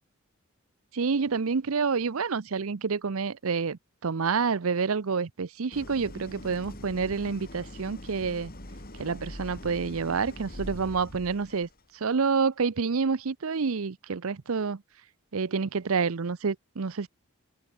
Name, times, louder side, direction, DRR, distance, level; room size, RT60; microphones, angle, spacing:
voice 1, 0.9-8.5 9.0-11.7 12.0-14.8 15.3-17.1, right 5 dB, 70° right, 0.6 m, -28 dB
Idling, 5.7-11.8, left 1 dB, 40° left, 4.0 m, -43 dB
head